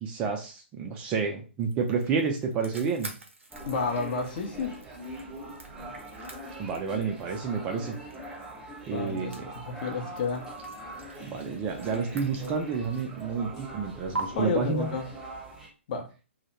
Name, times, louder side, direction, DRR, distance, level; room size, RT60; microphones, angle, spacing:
voice 1, 0.0-3.1 6.6-8.0 8.9-9.5 11.2-14.9, right 5 dB, 20° right, 2 dB, 0.3 m, -30 dB
sound 1, 1.6-13.5 14.1-14.2, right 3 dB, 70° right, 0.6 m, -45 dB
sound 2, 3.5-15.7, right 1 dB, 5° right, 0.7 m, -42 dB
voice 2, 3.7-4.7 8.9-9.3 9.7-10.5 14.3-15.1 15.9-16.1, left 4 dB, 40° left, 2 dB, 0.6 m, -30 dB
2.2 x 2.0 x 2.8 m, 0.33 s
figure-of-eight pair, 120°, 7 cm